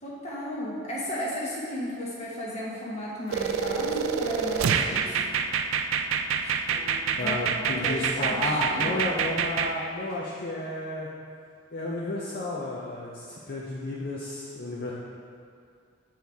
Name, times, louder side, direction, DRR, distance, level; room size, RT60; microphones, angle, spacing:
voice 1, 0.0-5.3 6.4-9.1, left 1 dB, 35° left, -6 dB, 1.2 m, -35 dB
sound 1, 3.3-9.7, right 6 dB, 85° right, 0.3 m, -27 dB
voice 2, 7.2-11.1 11.7-14.9, left 2 dB, 50° left, -5 dB, 0.6 m, -32 dB
7.7 x 4.5 x 3.5 m, 2.2 s
head